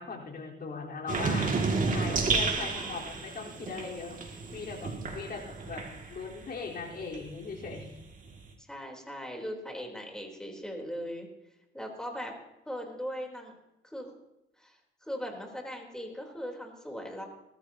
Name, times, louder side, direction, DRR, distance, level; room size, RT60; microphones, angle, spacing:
voice 1, 0.0-1.6 1.9-5.8 6.1-7.9, left 4 dB, 50° left, -2 dB, 4.2 m, -39 dB
sound 1, 1.1-6.4 6.8-8.5, right 4 dB, 40° right, 2.4 m, -32 dB
voice 2, 2.6-3.0 8.6-11.3 11.7-12.4 12.7-13.5 13.8-14.1 14.6-17.2, equal, 5° left, 1 dB, 3.7 m, -39 dB
19.5 x 13.5 x 2.9 m, 0.92 s
cardioid pair, 90°, 20 cm